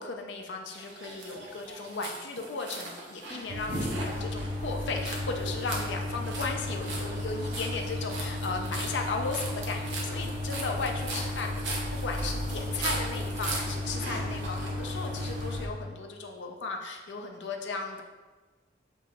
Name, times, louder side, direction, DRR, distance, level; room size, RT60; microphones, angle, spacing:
voice 1, 0.0-11.5 11.9-18.0, left 4 dB, 75° left, 2 dB, 0.5 m, -36 dB
sound 1, 0.7-15.5, right 2 dB, 75° right, 0.8 m, -39 dB
sound 2, 3.5-15.7, left 1 dB, 45° right, 0.7 m, -34 dB
7.4 x 3.0 x 2.4 m, 1.3 s
head